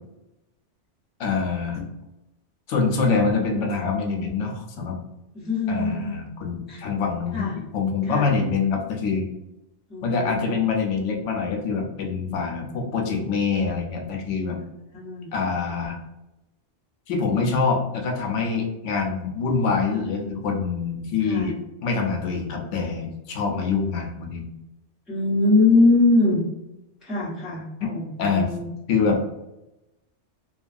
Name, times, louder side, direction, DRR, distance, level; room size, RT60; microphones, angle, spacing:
voice 1, 1.2-1.9 2.7-5.0 5.7-9.3 10.0-14.6 15.3-16.0 17.1-21.6 21.8-24.5 27.8-27.9 28.2-28.5 28.9-29.2, left 4 dB, 90° left, 2 dB, 0.9 m, -25 dB
voice 2, 5.3-6.1 6.7-6.8 7.3-7.5 8.1-8.3 9.9-10.6 14.9-15.3 21.3-21.5 23.6-23.9 25.1-26.4 27.0-28.6, left 2 dB, ahead, -10 dB, 0.9 m, -22 dB
2.9 x 2.2 x 2.5 m, 0.93 s
omnidirectional pair, 1.2 m